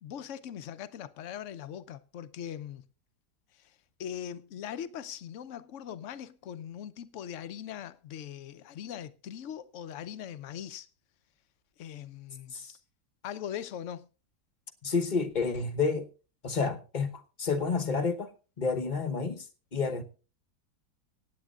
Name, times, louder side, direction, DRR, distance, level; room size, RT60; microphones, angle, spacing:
voice 1, 0.0-2.9 3.5-10.9 11.8-12.6 13.2-14.1, left 9 dB, 60° left, 0.9 m, -41 dB
voice 2, 14.8-16.1 16.4-18.3 18.6-20.0, left 4 dB, 35° left, 1.0 m, -30 dB
25.0 x 8.8 x 2.4 m
omnidirectional pair, 1.7 m